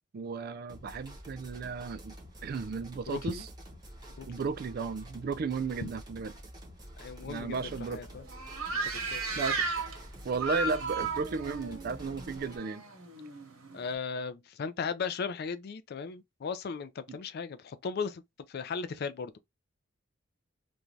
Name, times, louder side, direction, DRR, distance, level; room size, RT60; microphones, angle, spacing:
voice 1, 0.1-2.1 2.4-3.5 4.3-6.3 7.3-8.0 9.4-9.6 10.2-12.8 17.1-17.2, right 5 dB, 45° right, 0.3 m, -34 dB
sound 1, 0.7-12.6, right 1 dB, 20° right, 0.7 m, -48 dB
voice 2, 3.1-3.4 4.2-4.3 7.0-8.3 8.9-9.4 13.7-18.2 18.5-19.4, left 5 dB, 50° left, 0.3 m, -37 dB
sound 2, 7.5-13.9, right 3 dB, 90° right, 1.0 m, -36 dB
2.6 x 2.3 x 3.1 m
head